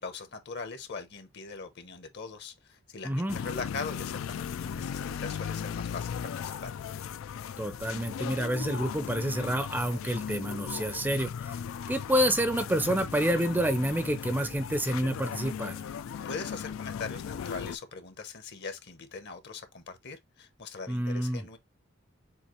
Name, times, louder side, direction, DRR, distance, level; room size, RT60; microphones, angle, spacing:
voice 1, 0.0-6.7 16.2-21.6, left 4 dB, 55° left, 1.0 m, -41 dB
voice 2, 3.0-3.4 7.6-11.6 11.9-15.8 20.9-21.4, right 1 dB, 10° right, 0.5 m, -28 dB
sound 1, 3.3-17.8, left 7 dB, 80° left, 0.3 m, -37 dB
7.1 x 2.5 x 3.0 m
head